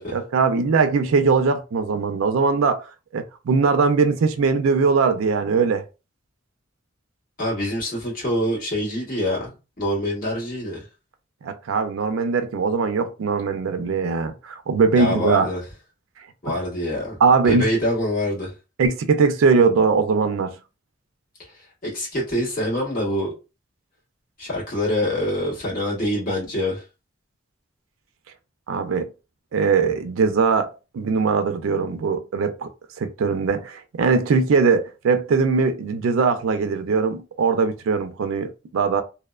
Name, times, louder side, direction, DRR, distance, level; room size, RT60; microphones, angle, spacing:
voice 1, 0.1-5.9 11.4-15.5 17.2-17.7 18.8-20.6 28.7-29.1 29.5-32.7 33.0-39.0, right 5 dB, 80° right, 0.4 m, -21 dB
voice 2, 7.4-9.5 9.8-10.8 14.9-15.6 16.4-17.2 17.4-18.5 21.8-23.3 24.4-26.8, left 1 dB, 45° left, 1.4 m, -25 dB
2.7 x 2.1 x 2.3 m
head